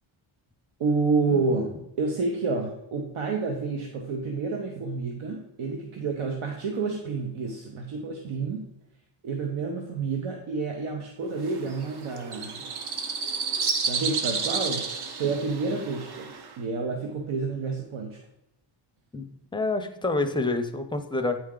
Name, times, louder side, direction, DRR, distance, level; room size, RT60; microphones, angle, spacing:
voice 1, 0.8-8.7 9.2-12.7 13.8-18.2, right 4 dB, 80° right, 2 dB, 0.9 m, -29 dB
sound 1, 11.4-16.6, right 5 dB, 55° right, 0.8 m, -31 dB
voice 2, 19.1-21.4, left 2 dB, 10° left, 6 dB, 0.5 m, -28 dB
8.5 x 4.4 x 3.7 m, 0.86 s
wide cardioid pair, 120°, 49 cm